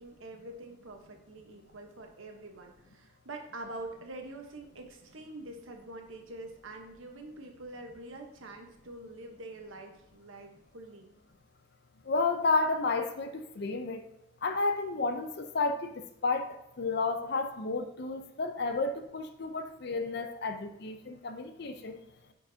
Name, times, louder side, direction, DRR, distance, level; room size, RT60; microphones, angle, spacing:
voice 1, 0.0-11.1, right 2 dB, 85° right, 4 dB, 1.0 m, -45 dB
voice 2, 12.1-14.0 14.4-22.0, left 3 dB, 55° left, 8 dB, 0.6 m, -31 dB
10.0 x 4.6 x 2.7 m, 0.84 s
head